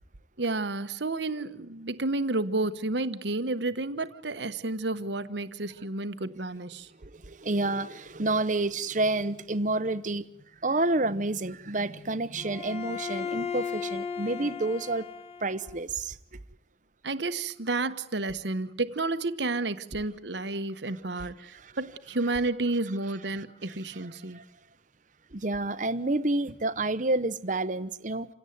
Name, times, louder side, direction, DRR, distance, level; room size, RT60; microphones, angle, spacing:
voice 1, 0.4-6.9 17.0-24.4, right 2 dB, 70° right, 1.2 m, -31 dB
voice 2, 7.0-10.3 10.6-15.1 15.4-16.2 21.2-21.3 21.5-21.7 24.3-24.4 25.3-28.3, right 2 dB, 40° right, 1.0 m, -29 dB
Bowed string instrument, 12.4-15.8, left 6 dB, 35° left, 3.1 m, -36 dB
28.0 x 17.0 x 9.4 m
head